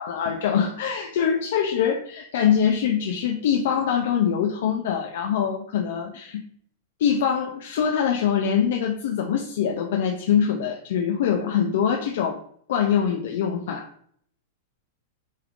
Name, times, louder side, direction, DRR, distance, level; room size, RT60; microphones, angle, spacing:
voice 1, 0.0-6.4 7.0-12.4 12.7-13.9, left 8 dB, 65° left, 2 dB, 0.4 m, -23 dB
3.5 x 3.1 x 2.4 m, 0.63 s
supercardioid pair, 150°, 0 cm